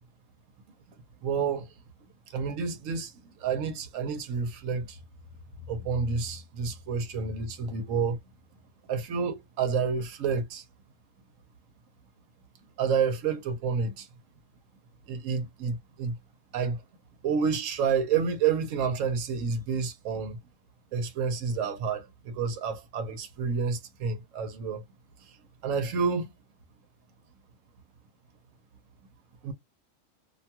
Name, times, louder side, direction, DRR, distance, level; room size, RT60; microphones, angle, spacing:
voice 1, 1.2-1.7 2.3-5.0 5.7-8.2 8.9-10.6 12.8-14.1 15.1-16.2 16.5-16.8 17.2-20.4 20.9-24.8 25.3-25.4 25.6-26.3 29.4-29.5, right 6 dB, 75° right, 1.0 m, -29 dB
2.6 x 2.2 x 2.7 m
omnidirectional pair, 1.4 m